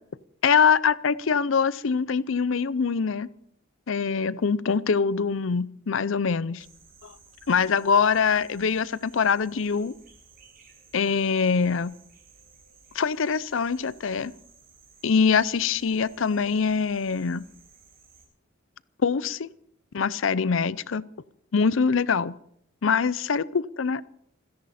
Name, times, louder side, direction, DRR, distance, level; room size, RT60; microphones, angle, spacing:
voice 1, 0.4-3.3 3.9-6.6 7.0-7.1 7.5-9.9 10.9-11.9 12.9-14.3 15.0-17.5 19.0-19.5 19.9-21.0 21.5-22.3 22.8-24.0, left 5 dB, 75° left, 19 dB, 0.6 m, -24 dB
sound 1, 6.6-18.3, right 5 dB, 50° right, 7.3 m, -56 dB
27.0 x 10.5 x 4.3 m, 0.69 s
head